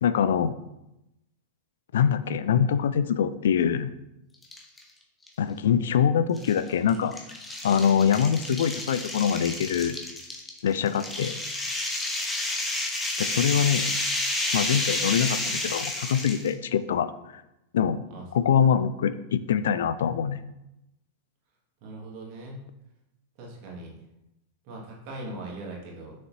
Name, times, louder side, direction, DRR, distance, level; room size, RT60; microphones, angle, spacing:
voice 1, 0.0-0.5 1.9-3.9 5.4-7.2 7.6-10.0 10.6-11.4 13.2-13.9 14.5-17.4 17.7-18.0 18.3-20.4, left 8 dB, 60° left, 13 dB, 0.3 m, -24 dB
sound 1, 4.4-4.8 5.3-5.4 6.4-16.5, left 2 dB, 10° left, 1.1 m, -30 dB
voice 2, 21.8-22.6 23.4-23.9 24.7-26.1, right 2 dB, 45° right, -2 dB, 2.0 m, -40 dB
6.5 x 6.4 x 2.8 m, 0.88 s
figure-of-eight pair, 90°, 0 cm